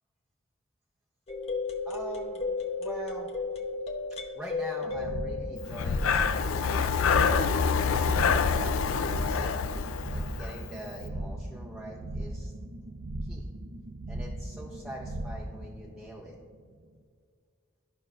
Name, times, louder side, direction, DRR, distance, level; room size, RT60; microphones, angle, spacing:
sound 1, 1.3-6.4, left 4 dB, 30° left, 0.8 m, -34 dB
voice 1, 1.8-2.4 2.8-3.3 4.3-7.7 8.3-9.5 10.1-12.5 13.2-13.5 14.1-16.4, right 1 dB, 5° right, -5 dB, 0.6 m, -43 dB
sound 2, 4.8-16.6, right 1 dB, 70° right, 0.6 m, -38 dB
Breathing, 5.7-10.6, left 5 dB, 85° left, 0.4 m, -26 dB
13.0 x 5.4 x 2.4 m, 2.1 s
head